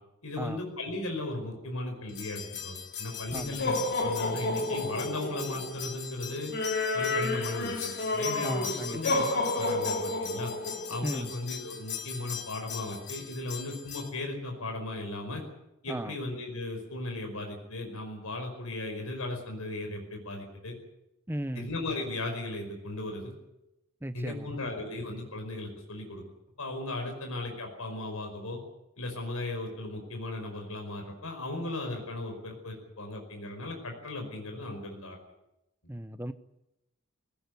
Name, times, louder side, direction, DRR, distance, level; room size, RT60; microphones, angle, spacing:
voice 1, 0.2-6.5 6.9-9.3 9.5-10.5 10.9-15.4 15.8-20.7 21.6-23.3 24.1-26.2 26.6-28.6 29.0-35.2, left 2 dB, 85° left, 3 dB, 5.2 m, -36 dB
sound 1, 2.1-14.1, left 3 dB, 50° left, 3.7 m, -32 dB
voice 2, 3.3-3.7 8.4-9.0 11.0-11.3 15.9-16.2 21.3-21.7 24.0-24.7 35.9-36.3, right 1 dB, 10° right, 11 dB, 0.9 m, -36 dB
19.5 x 17.5 x 9.6 m, 0.90 s
head